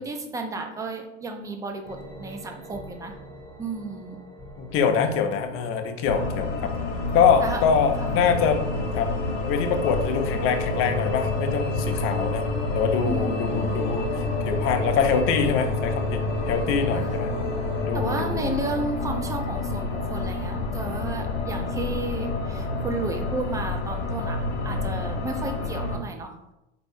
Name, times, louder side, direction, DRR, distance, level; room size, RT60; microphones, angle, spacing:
voice 1, 0.0-3.1 3.6-4.2 7.4-7.6 8.0-8.3 13.0-13.9 16.9-17.1 17.9-26.4, right 3 dB, 10° right, 4 dB, 0.3 m, -33 dB
sound 1, 1.8-17.9, right 1 dB, 5° left, 1.0 m, -36 dB
voice 2, 4.6-6.7 7.1-8.6 8.9-9.1 9.5-12.5 12.7-16.2 16.5-17.3 17.9-18.8, left 6 dB, 40° left, 6 dB, 0.6 m, -24 dB
sound 2, 6.0-26.0, left 3 dB, 65° left, 0.9 m, -29 dB
4.0 x 2.7 x 3.4 m, 0.92 s
hypercardioid pair, 95°, 35 cm